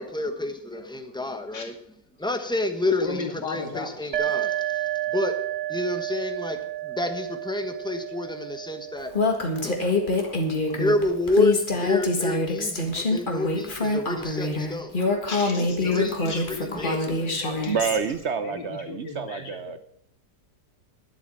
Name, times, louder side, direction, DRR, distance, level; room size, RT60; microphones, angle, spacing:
voice 1, 0.1-1.7 2.2-4.6 5.1-5.3 5.7-6.6 6.8-9.1 9.6-9.9 10.7-15.0 15.8-16.1 16.8-17.2, left 2 dB, 5° left, 7 dB, 0.9 m, -28 dB
voice 2, 3.0-4.2 9.8-10.4 13.3-13.5 15.0-18.1 18.4-19.8, left 3 dB, 80° left, 2 dB, 3.1 m, -35 dB
sound 1, 4.1-11.6, right 13 dB, 50° right, 1.0 m, -32 dB
Female speech woman speaking, 9.1-18.0, left 3 dB, 30° left, 1.8 m, -25 dB
voice 3, 17.7-19.8, right 6 dB, 70° right, 12 dB, 0.6 m, -28 dB
11.5 x 8.1 x 7.7 m, 0.69 s
omnidirectional pair, 1.9 m